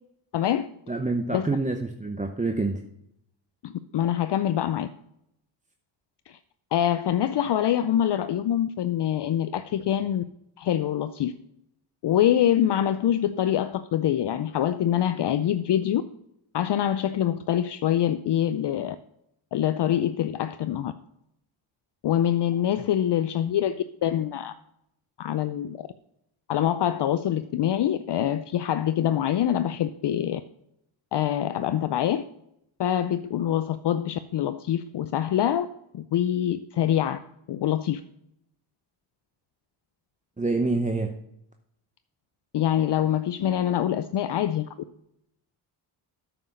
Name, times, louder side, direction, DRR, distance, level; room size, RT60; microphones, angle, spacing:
voice 1, 0.3-0.7 1.3-1.5 3.6-4.9 6.3-6.4 6.7-10.2 10.6-11.3 12.0-16.0 16.5-19.0 19.5-20.9 22.0-23.8 24.0-24.5 25.2-25.9 26.5-30.4 31.1-32.2 32.8-35.7 35.9-37.2 37.5-38.0 42.5-44.7, left 10 dB, 55° left, 11 dB, 0.5 m, -25 dB
voice 2, 0.9-2.8 40.4-41.1, right 3 dB, 15° right, 5 dB, 0.7 m, -26 dB
9.0 x 6.0 x 6.4 m, 0.78 s
cardioid pair, 75°, 49 cm